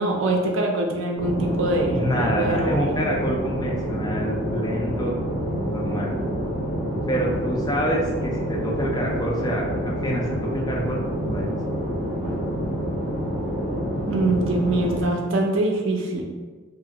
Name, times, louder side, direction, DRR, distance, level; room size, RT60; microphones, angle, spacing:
voice 1, 0.0-3.0 14.0-16.3, right 2 dB, 65° right, 1 dB, 0.5 m, -24 dB
sound 1, 1.2-15.0, equal, 30° right, 1.0 m, -27 dB
voice 2, 1.9-5.1 5.6-6.1 7.1-11.5, equal, 20° left, -1 dB, 0.4 m, -27 dB
2.9 x 2.5 x 2.8 m, 1.4 s
head